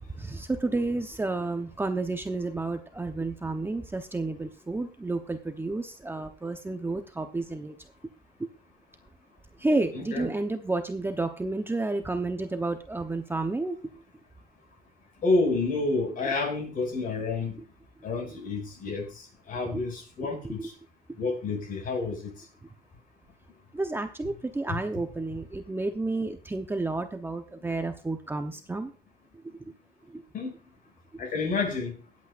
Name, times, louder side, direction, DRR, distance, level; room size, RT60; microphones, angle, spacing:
voice 1, 0.1-7.7 9.6-13.8 19.7-19.8 23.7-28.9, right 2 dB, 15° right, 6 dB, 0.9 m, -31 dB
voice 2, 9.9-10.3 15.2-17.6 18.0-20.7 21.2-22.4 24.7-24.8 30.3-30.5 31.2-32.0, left 3 dB, 55° left, 2 dB, 6.2 m, -29 dB
22.5 x 8.5 x 2.5 m, 0.33 s
cardioid pair, 110°, 17 cm